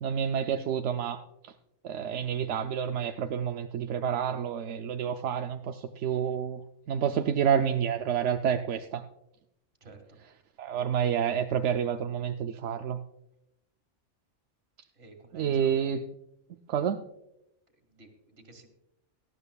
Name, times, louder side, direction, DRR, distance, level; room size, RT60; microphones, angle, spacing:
voice 1, 0.0-1.5 1.8-9.0 10.6-13.0 15.3-16.0 16.7-17.0, right 8 dB, 85° right, 6 dB, 0.9 m, -29 dB
voice 2, 9.8-10.2 14.9-15.8 17.9-18.7, right 3 dB, 60° right, 5 dB, 2.0 m, -52 dB
18.0 x 12.0 x 2.3 m, 0.84 s
omnidirectional pair, 1.2 m